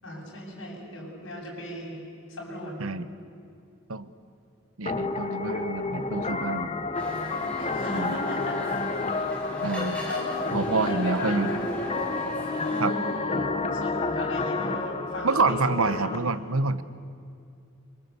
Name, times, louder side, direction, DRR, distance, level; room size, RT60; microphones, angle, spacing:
voice 1, 0.0-2.0 2.3-2.8 7.6-8.6 10.0-11.6 11.9-12.1 12.7-15.6 15.9-16.2, left 1 dB, 60° left, -2 dB, 7.4 m, -36 dB
voice 2, 4.8-6.7 7.9-8.2 9.6-10.1 10.5-11.5 12.8-12.9 15.2-16.8, right 3 dB, 75° right, 14 dB, 1.0 m, -27 dB
sound 1, 4.9-16.2, left 3 dB, 30° left, 1.2 m, -30 dB
sound 2, 6.9-12.8, left 1 dB, 5° left, 4.2 m, -39 dB
26.5 x 24.5 x 8.2 m, 2.4 s
head